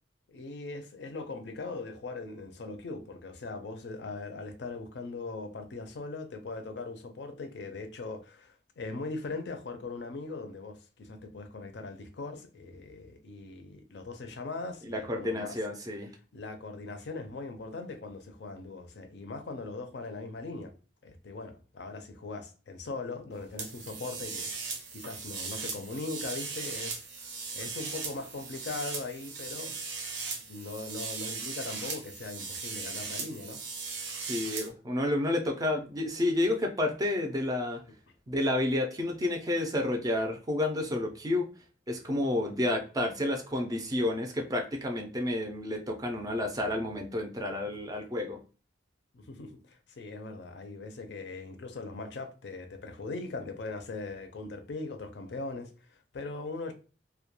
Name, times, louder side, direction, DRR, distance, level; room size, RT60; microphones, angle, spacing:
voice 1, 0.3-15.6 16.3-20.7 21.0-29.8 30.5-33.6 49.1-56.7, left 3 dB, 65° left, 0.4 m, -40 dB
voice 2, 14.9-16.1 34.3-37.8 38.3-41.5 41.9-48.4, left 1 dB, 20° right, 0.4 m, -30 dB
sound 1, 23.6-34.7, right 4 dB, 70° right, 0.6 m, -38 dB
2.2 x 2.1 x 2.9 m
head